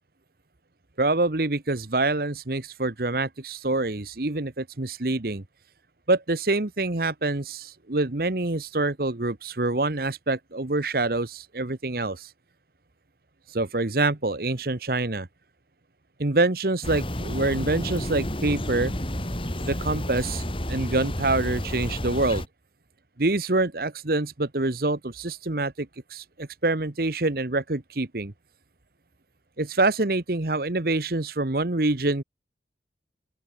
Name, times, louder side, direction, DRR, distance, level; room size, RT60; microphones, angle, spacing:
voice 1, 1.0-5.4 6.1-12.3 13.5-15.3 16.2-18.9 19.7-22.5 23.2-28.3 29.6-32.2, right 2 dB, 55° right, 1.2 m, -26 dB
sound 1, 16.8-22.5, equal, 30° left, 6.5 m, -30 dB
open air
head